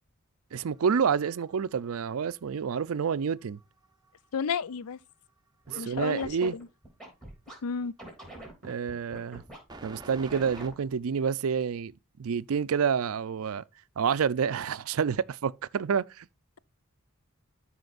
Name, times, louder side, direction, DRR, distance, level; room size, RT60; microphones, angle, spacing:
voice 1, 0.5-3.6 5.7-6.6 8.6-9.4 9.8-11.9 12.2-13.6 14.0-16.3, right 6 dB, 75° right, 0.4 m, -28 dB
sound 1, 0.6-3.3 3.6-4.7 9.7-10.7, right 2 dB, 20° right, 0.7 m, -47 dB
voice 2, 4.3-5.0 5.8-6.7 7.6-7.9, left 6 dB, 85° left, 0.4 m, -32 dB
Scratching (performance technique), 5.6-7.6 8.0-9.6 10.3-10.9, right 1 dB, ahead, 3.1 m, -45 dB
13.0 x 5.0 x 2.4 m
head